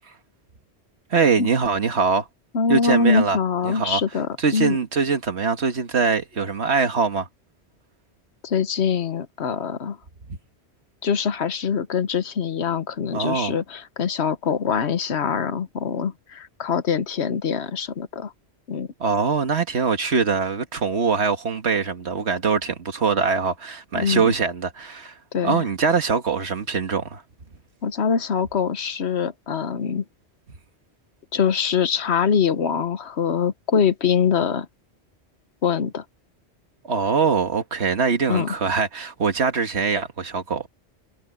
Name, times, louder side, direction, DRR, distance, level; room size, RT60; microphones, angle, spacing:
voice 1, 1.1-2.3 2.7-3.4 3.6-4.0 4.4-7.3 10.3-10.4 13.1-13.6 19.0-25.2 25.4-27.2 36.8-40.7, right 5 dB, 75° right, 1.9 m, -23 dB
voice 2, 2.5-4.8 8.4-10.0 11.0-18.3 18.7-18.9 23.9-24.3 25.3-25.7 27.8-30.0 31.3-34.7 35.6-36.0 38.3-38.5, left 6 dB, 75° left, 1.3 m, -23 dB
omnidirectional pair, 1.1 m